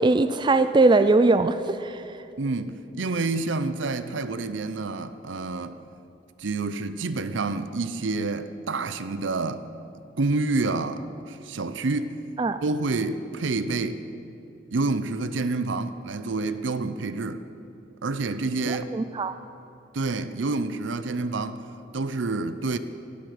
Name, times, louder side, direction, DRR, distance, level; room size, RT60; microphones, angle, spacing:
voice 1, 0.0-2.0 12.4-12.6 18.7-19.3, right 3 dB, 25° right, 0.3 m, -21 dB
voice 2, 2.4-5.8 6.4-9.7 10.2-12.2 12.6-14.0 14.7-17.4 18.0-18.9 19.9-21.6 21.9-22.8, right 3 dB, 75° right, 0.6 m, -28 dB
12.0 x 7.8 x 10.0 m
head